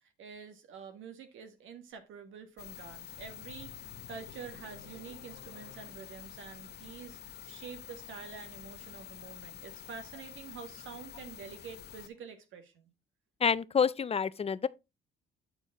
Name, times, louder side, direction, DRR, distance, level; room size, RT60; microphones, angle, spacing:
voice 1, 0.0-7.2 7.4-12.9, right 6 dB, 80° right, 1.7 m, -47 dB
sound 1, 2.6-12.1, left 10 dB, 55° left, 0.9 m, -48 dB
sound 2, 2.7-5.9, left 7 dB, 85° left, 1.4 m, -55 dB
voice 2, 13.4-14.7, left 6 dB, 30° left, 0.5 m, -28 dB
8.8 x 4.6 x 4.0 m
cardioid pair, 90°, 20 cm